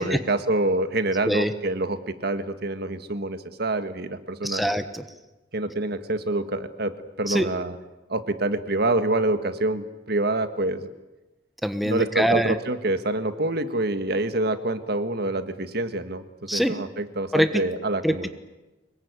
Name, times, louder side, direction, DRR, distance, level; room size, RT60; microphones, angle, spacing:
voice 1, 0.0-4.6 5.5-6.9 7.2-7.7 8.1-10.9 11.8-18.3, right 2 dB, 60° right, 10 dB, 1.7 m, -26 dB
voice 2, 4.4-5.0 7.3-7.5 11.6-12.5 16.5-16.8 17.3-17.6 18.0-18.3, equal, ahead, 9 dB, 1.2 m, -24 dB
25.0 x 22.0 x 9.6 m, 1.1 s
head